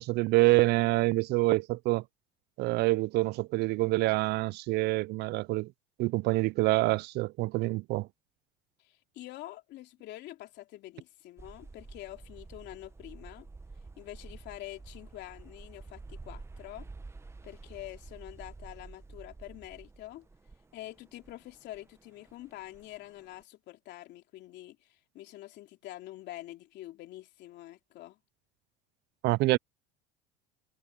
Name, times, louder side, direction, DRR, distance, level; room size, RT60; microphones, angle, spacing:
voice 1, 0.0-2.0 2.6-5.7 6.0-8.1 29.2-29.6, right 21 dB, 55° right, 0.4 m, -26 dB
voice 2, 8.8-13.5 14.0-16.9 17.4-20.3 20.7-28.2, left 15 dB, 60° left, 3.1 m, -46 dB
sound 1, 11.4-23.4, right 3 dB, 15° right, 1.1 m, -50 dB
supercardioid pair, 105°, 20 cm